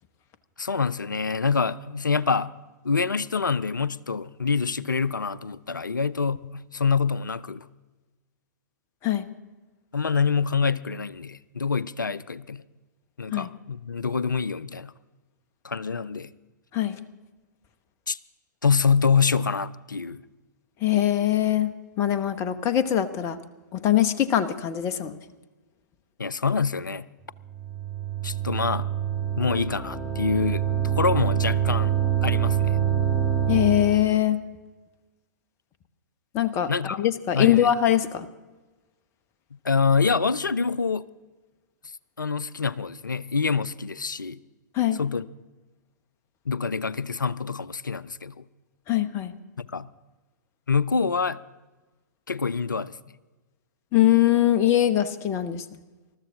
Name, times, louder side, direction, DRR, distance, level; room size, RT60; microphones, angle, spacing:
voice 1, 0.6-2.5 2.8-7.7 9.9-12.6 13.2-14.9 15.6-16.3 18.1-18.2 18.6-20.2 26.2-27.1 28.2-28.9 29.4-31.9 32.2-32.8 36.7-37.0 37.3-37.7 39.6-41.1 42.2-44.4 45.0-45.3 46.5-48.4 49.6-49.9 50.7-51.4 52.3-52.9, left 5 dB, 80° left, 20 dB, 0.5 m, -26 dB
voice 2, 20.8-21.7 22.0-23.4 23.7-25.2 33.5-34.4 36.3-36.7 37.0-38.3 44.7-45.0 48.9-49.3 53.9-55.6, left 12 dB, 25° left, 12 dB, 0.9 m, -22 dB
sound 1, 27.3-34.2, right 9 dB, 10° left, 1.5 m, -26 dB
20.5 x 13.5 x 3.8 m, 1.2 s
figure-of-eight pair, 110°, 10 cm